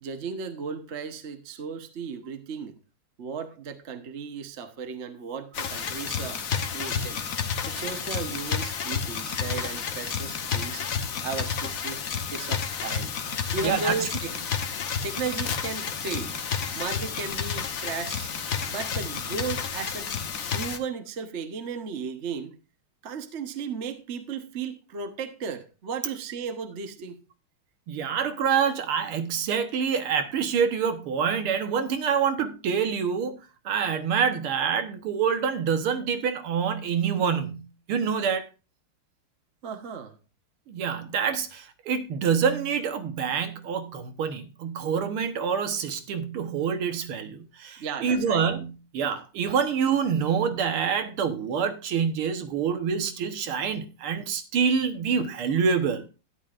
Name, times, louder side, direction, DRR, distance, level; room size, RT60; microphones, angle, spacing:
voice 1, 0.0-2.7 3.2-7.2 7.7-10.9 11.2-12.0 12.3-13.1 13.5-14.3 15.0-16.3 16.7-18.3 18.7-20.1 20.5-22.6 23.0-27.2 39.6-40.2 47.8-48.4, right 5 dB, 40° right, 1.1 m, -35 dB
sound 1, 5.5-20.8, left 6 dB, 50° left, 1.2 m, -31 dB
voice 2, 13.6-13.9 27.9-33.4 33.7-38.5 40.7-56.0, right 6 dB, 80° right, 2.1 m, -26 dB
12.5 x 11.0 x 2.5 m
omnidirectional pair, 2.4 m